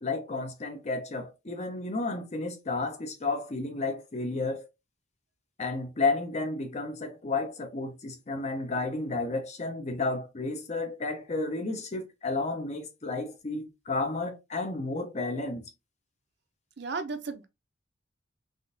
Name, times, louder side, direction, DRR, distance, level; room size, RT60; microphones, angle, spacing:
voice 1, 0.0-4.7 5.6-15.7, left 3 dB, 35° left, 0.6 m, -32 dB
voice 2, 16.8-17.5, right 4 dB, 60° right, 0.5 m, -34 dB
3.5 x 2.5 x 2.5 m
head